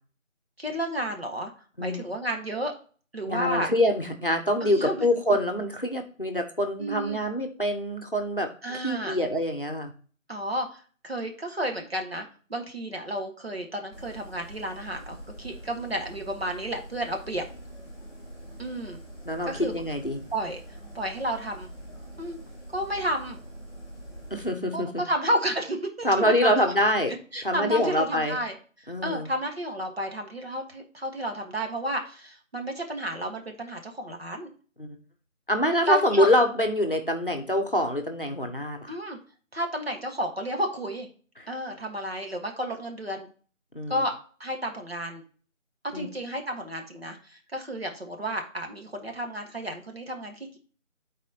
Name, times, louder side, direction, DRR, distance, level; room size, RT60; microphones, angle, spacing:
voice 1, 0.6-1.5 1.8-2.7 3.1-3.7 4.6-5.0 6.8-7.2 8.6-9.2 10.3-17.4 18.6-19.0 19.4-19.8 20.3-20.6 20.9-21.7 22.2-22.4 22.7-23.4 24.7-26.7 27.3-34.5 35.9-36.3 38.9-39.2 39.5-41.1 41.5-43.3 43.9-44.1 44.4-45.2 45.8-50.6, right 1 dB, 50° right, 3 dB, 1.4 m, -31 dB
voice 2, 3.2-8.5 8.8-9.9 19.3-20.2 24.3-25.0 26.0-27.1 27.4-28.4 28.9-29.3 34.8-35.0 35.5-38.9 43.7-44.0 45.9-46.1, left 1 dB, 40° left, 5 dB, 0.8 m, -25 dB
sound 1, 13.9-24.5, right 1 dB, 20° left, 2.2 m, -44 dB
11.0 x 4.2 x 2.8 m, 0.41 s
figure-of-eight pair, 175°, 40 cm